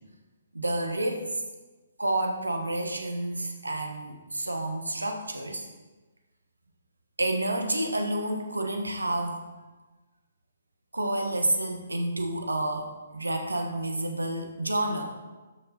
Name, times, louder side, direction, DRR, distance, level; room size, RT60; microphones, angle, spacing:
voice 1, 0.5-1.3 2.0-5.7 7.2-9.4 10.9-15.1, right 1 dB, 75° right, 4 dB, 1.4 m, -29 dB
12.0 x 6.0 x 4.2 m, 1.2 s
figure-of-eight pair, 130°, 0 cm